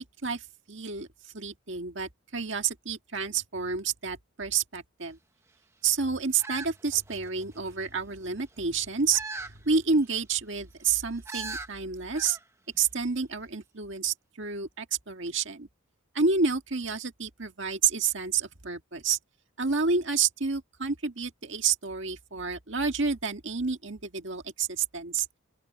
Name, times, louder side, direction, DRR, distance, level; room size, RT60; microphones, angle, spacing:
voice 1, 0.0-5.2 5.8-12.4 12.8-15.7 16.1-19.2 19.6-25.3, right 5 dB, 60° right, 1.8 m, -29 dB
sound 1, 6.4-7.6 9.1-9.6 10.0-10.1 11.3-11.7 12.1-12.4 12.7-12.8, right 3 dB, 15° right, 1.0 m, -38 dB
open air
head